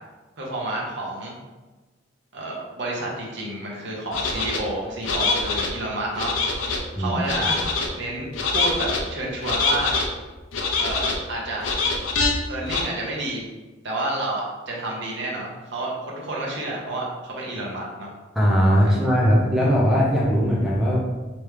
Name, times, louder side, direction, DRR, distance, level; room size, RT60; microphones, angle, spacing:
voice 1, 0.4-1.3 2.3-6.4 7.0-7.6 8.0-8.3 8.5-10.0 10.8-11.6 12.5-13.4 13.8-18.1 18.8-19.1, right 2 dB, 65° right, -3 dB, 0.9 m, -30 dB
sound 1, 4.1-4.6 5.0-5.7 6.2-6.8 7.2-7.9 8.3-9.0 9.4-10.1 10.5-11.2 11.6-12.3 12.7-12.8, left 4 dB, 80° left, 0.6 m, -24 dB
voice 2, 18.3-21.0, equal, ahead, -4 dB, 0.7 m, -19 dB
3.4 x 3.0 x 3.3 m, 1.2 s
head